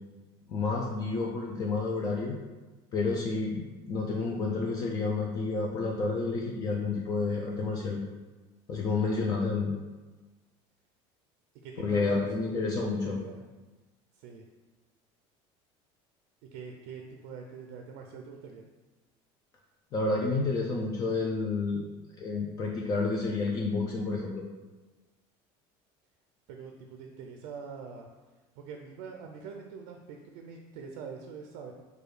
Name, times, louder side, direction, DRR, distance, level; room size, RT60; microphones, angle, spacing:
voice 1, 0.5-2.4 2.9-8.0 8.7-9.8 11.8-13.2 19.9-21.8 22.2-24.5, left 3 dB, 30° left, -1 dB, 0.5 m, -30 dB
voice 2, 11.6-13.4 14.1-14.5 16.5-18.7 26.5-28.1 28.6-31.7, right 5 dB, 80° right, 3 dB, 0.5 m, -44 dB
4.8 x 2.3 x 4.8 m, 1.2 s
cardioid pair, 155°, 12 cm